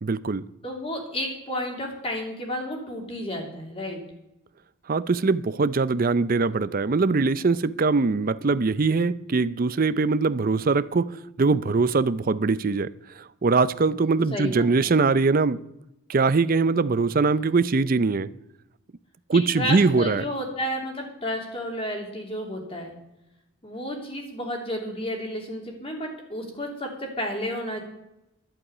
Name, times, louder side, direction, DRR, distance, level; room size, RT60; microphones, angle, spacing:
voice 1, 0.0-0.5 4.9-15.6 16.1-18.3 19.3-20.3, right 4 dB, 40° right, 0.5 m, -22 dB
voice 2, 0.6-4.0 14.3-14.9 19.5-22.9 23.6-27.8, equal, 25° left, 3.1 m, -32 dB
11.5 x 8.0 x 9.5 m
head